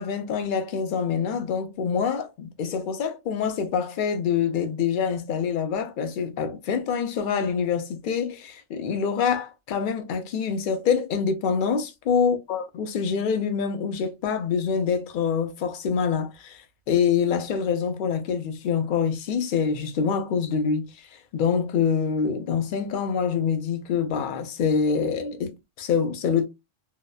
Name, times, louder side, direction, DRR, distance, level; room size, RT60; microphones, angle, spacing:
voice 1, 0.0-16.6 16.9-20.9 21.1-26.5, left 6 dB, 60° left, 0.5 m, -25 dB
2.7 x 2.1 x 2.2 m
omnidirectional pair, 1.3 m